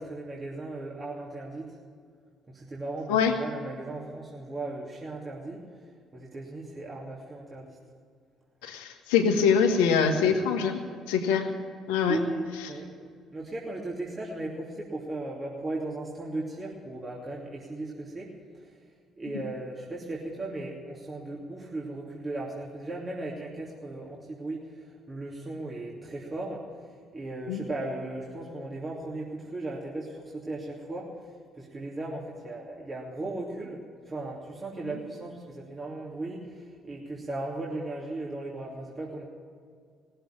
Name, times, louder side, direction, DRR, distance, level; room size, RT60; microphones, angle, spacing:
voice 1, 0.0-1.8 2.5-7.8 12.1-12.9 13.3-18.3 18.6-18.8 19.2-39.2, right 2 dB, 35° right, -4 dB, 2.9 m, -37 dB
voice 2, 8.6-11.5 11.9-12.2 27.5-27.6, left 6 dB, 80° left, 4 dB, 1.5 m, -24 dB
19.0 x 7.9 x 8.8 m, 2.1 s
hypercardioid pair, 50°, 0 cm